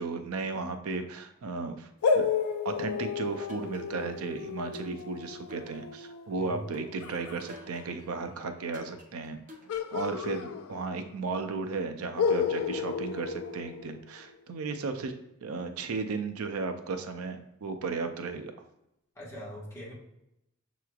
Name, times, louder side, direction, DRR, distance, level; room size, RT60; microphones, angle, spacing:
voice 1, 0.0-1.9 2.1-2.3 2.6-9.4 9.9-15.1 15.4-18.5, right 4 dB, 85° right, 7 dB, 0.5 m, -35 dB
sound 1, 2.0-7.5 9.7-11.2 11.4-11.5 12.2-14.4, left 5 dB, 85° left, 0.4 m, -32 dB
sound 2, 3.5-4.2 4.7-6.2 6.7-8.1 8.7-10.2, left 1 dB, 40° right, 0.7 m, -51 dB
voice 2, 19.2-19.9, equal, 15° left, -6 dB, 1.4 m, -42 dB
6.8 x 3.0 x 2.3 m, 0.84 s
head